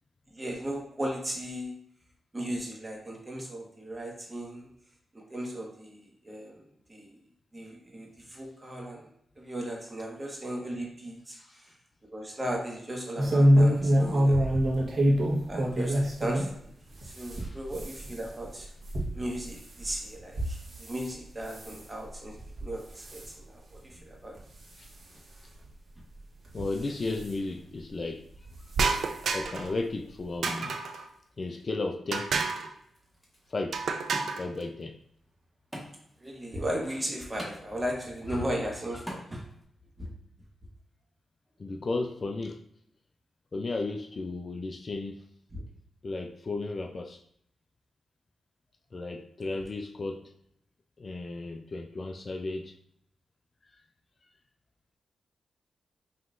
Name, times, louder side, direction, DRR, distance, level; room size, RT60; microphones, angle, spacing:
voice 1, 0.3-1.7 2.3-4.7 5.1-6.6 6.9-7.1 7.5-9.1 9.4-11.7 12.1-14.6 15.5-16.5 17.0-18.7 19.1-24.3 36.2-39.4 40.0-40.1 45.5-45.6 49.4-49.6, right 1 dB, 25° right, 1.4 m, -36 dB
sound 1, 13.2-16.5 16.9-21.1 21.5-21.8 22.4-22.7 23.0-23.3 23.9-24.0 24.4-24.5 25.6-25.7 26.5-27.3 28.4-28.6 29.0-29.1 29.4-29.5, equal, 50° right, 1.2 m, -26 dB
voice 2, 26.5-28.3 29.0-30.8 31.4-32.3 33.5-33.8 34.4-35.0 38.3-38.4 41.6-42.6 43.5-45.3 46.0-47.2 48.9-50.3 51.0-52.8, left 3 dB, 45° left, 0.4 m, -34 dB
sound 2, 28.7-29.7 30.4-31.0 32.1-32.7 33.7-34.5, right 4 dB, 75° right, 0.4 m, -30 dB
Wood, 29.6-39.6, equal, 5° right, 1.4 m, -48 dB
5.5 x 3.0 x 2.5 m
cardioid pair, 70°, 0 cm